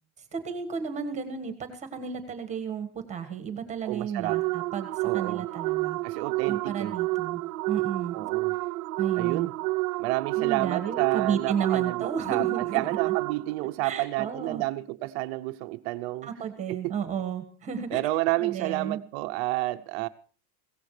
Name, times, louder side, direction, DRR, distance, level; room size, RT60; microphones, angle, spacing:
voice 1, 0.3-6.0 6.4-7.4 7.7-8.1 9.0-9.5 10.4-12.8 13.8-14.6 16.2-18.0 18.4-19.0, right 7 dB, 15° right, 7 dB, 1.5 m, -33 dB
voice 2, 3.8-4.4 5.0-5.5 6.0-6.9 8.1-8.6 9.1-9.5 10.0-16.3 16.7-16.9 17.9-20.1, right 19 dB, 45° right, 9 dB, 0.7 m, -30 dB
sound 1, 4.3-13.7, right 22 dB, 80° right, 0.7 m, -30 dB
22.0 x 17.5 x 3.3 m, 0.39 s
cardioid pair, 180°, 44 cm